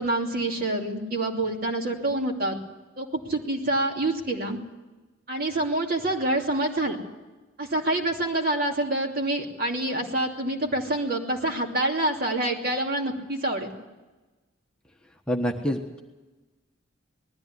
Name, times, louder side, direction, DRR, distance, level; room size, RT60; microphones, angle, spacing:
voice 1, 0.0-2.6 3.0-4.6 5.3-7.0 7.6-13.7, right 1 dB, 45° right, 1 dB, 2.8 m, -27 dB
voice 2, 15.3-16.0, equal, 5° left, 0 dB, 1.3 m, -27 dB
20.0 x 14.0 x 9.6 m, 1.2 s
head